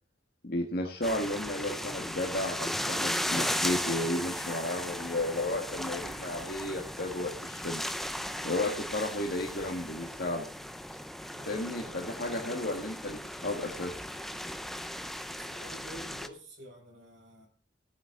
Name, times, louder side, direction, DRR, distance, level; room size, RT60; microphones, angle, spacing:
voice 1, 0.4-7.8 8.4-10.5 11.5-13.9, left 1 dB, 55° left, 1 dB, 1.9 m, -33 dB
sound 1, 1.0-16.3, equal, ahead, 0.7 m, -36 dB
voice 2, 11.3-12.0 15.4-17.5, equal, 80° right, -1 dB, 6.8 m, -49 dB
18.0 x 9.4 x 3.9 m, 0.42 s
head